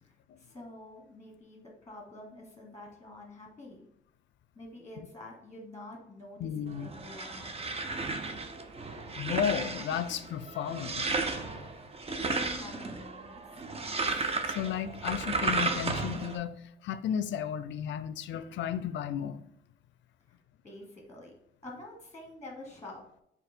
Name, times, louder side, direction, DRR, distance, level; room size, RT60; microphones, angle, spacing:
voice 1, 0.0-3.9 4.5-7.8 12.3-13.4 20.3-20.4 20.6-21.3 21.6-23.0, left 2 dB, 15° left, 0 dB, 1.2 m, -47 dB
voice 2, 6.4-6.9 9.2-11.1 14.1-19.4, left 9 dB, 70° left, 14 dB, 0.4 m, -34 dB
sound 1, 6.7-16.4, right 3 dB, 30° right, 0.6 m, -34 dB
4.3 x 2.8 x 4.3 m, 0.74 s
cardioid pair, 90°, 20 cm